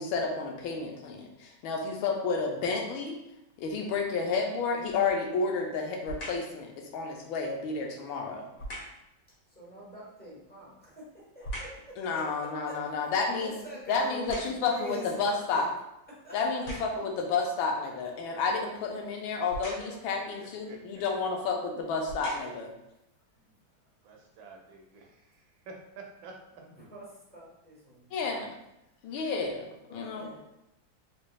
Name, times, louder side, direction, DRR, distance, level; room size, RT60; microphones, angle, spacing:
voice 1, 0.0-3.2 3.6-8.5 12.0-13.5 13.9-15.7 16.3-22.7 28.1-28.5 29.0-30.3, left 4 dB, 90° left, 2 dB, 1.5 m, -31 dB
sound 1, 4.9-5.3 6.0-6.5 8.5-9.1 10.5-11.9 12.4-14.9 15.5-15.6 16.4-17.1 19.5-20.1 21.1-21.2 21.9-22.7 23.3-23.4, right 1 dB, 55° left, 1.5 m, -42 dB
voice 2, 8.2-8.6 9.5-12.2 12.7-15.7 16.2-16.9 19.8-20.6 21.7-21.8 23.4-23.5 26.6-28.5 28.8-28.9 29.9-30.4, right 1 dB, 5° left, -7 dB, 0.8 m, -46 dB
voice 3, 19.8-21.3 24.0-26.3, right 3 dB, 80° right, 1 dB, 1.4 m, -50 dB
4.0 x 3.3 x 2.3 m, 0.85 s
omnidirectional pair, 2.2 m